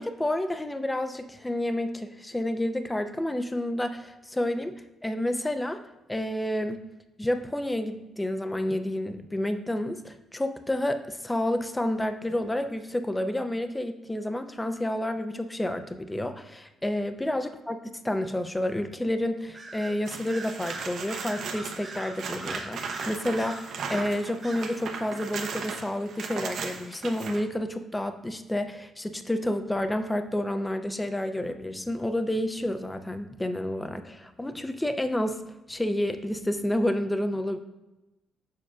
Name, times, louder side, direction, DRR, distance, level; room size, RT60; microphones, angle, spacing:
voice 1, 0.0-5.8 6.1-6.8 7.2-35.4 35.7-37.6, left 1 dB, 10° left, 8 dB, 0.5 m, -30 dB
Bird vocalization bird call bird song, 19.5-20.0 20.3-24.1 24.4-24.7, right 3 dB, 30° right, 1.1 m, -41 dB
sound 1, 20.0-27.4 30.1-30.2, right 5 dB, 65° right, 0.8 m, -37 dB
7.0 x 6.1 x 2.4 m, 1.0 s
cardioid pair, 90°, 0 cm